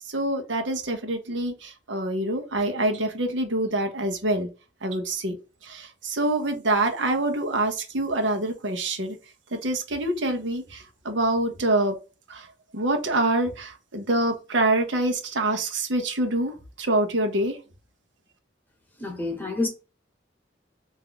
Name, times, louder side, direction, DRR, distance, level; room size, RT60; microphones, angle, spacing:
voice 1, 0.1-4.5 4.8-5.4 5.6-9.2 9.5-11.9 12.3-12.5 12.7-17.6, right 2 dB, 80° right, 0.9 m, -26 dB
voice 2, 19.0-19.7, left 2 dB, 10° left, 0.9 m, -28 dB
3.5 x 2.7 x 3.9 m
head